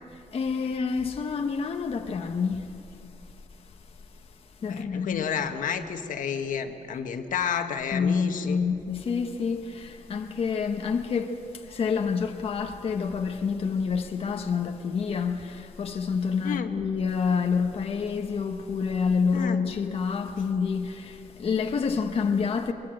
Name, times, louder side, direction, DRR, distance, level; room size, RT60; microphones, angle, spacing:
voice 1, 0.3-2.7 4.6-5.2 7.9-22.7, left 5 dB, 45° left, 1.1 m, -28 dB
voice 2, 4.6-8.6 16.4-16.7 19.3-19.6, left 7 dB, 80° left, 1.4 m, -31 dB
23.0 x 22.5 x 7.8 m
wide cardioid pair, 165°, 14 cm